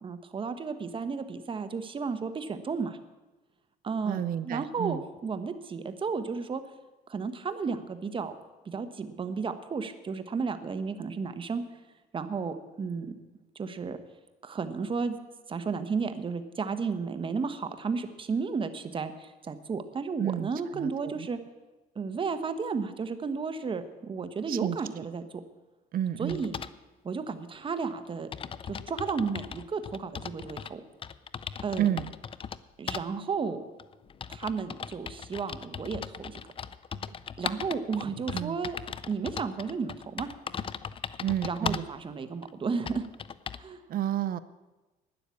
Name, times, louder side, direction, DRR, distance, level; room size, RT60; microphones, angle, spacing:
voice 1, 0.0-3.0 3.8-6.6 7.1-8.3 8.6-11.6 12.1-13.1 13.5-14.0 14.4-15.2 15.5-21.4 21.9-25.3 26.2-26.6 27.0-28.3 28.7-30.8 31.6-31.9 32.8-33.6 34.3-36.4 37.4-38.8 39.0-40.3 41.4-43.1 43.6-43.8, right 5 dB, 30° right, 10 dB, 1.2 m, -33 dB
voice 2, 4.0-5.0 20.2-21.3 24.5-24.8 25.9-26.4 31.8-32.1 38.3-38.6 41.2-41.8 43.9-44.4, right 11 dB, 55° right, 14 dB, 0.8 m, -30 dB
sound 1, 26.3-26.8 27.7-27.8 28.0-28.1 28.3-30.7 31.0-32.6 32.9-33.1 33.8-41.9 42.4-42.5 42.9-43.7, left 7 dB, 30° left, 0.5 m, -38 dB
12.0 x 9.9 x 8.4 m, 1.1 s
cardioid pair, 110°, 17 cm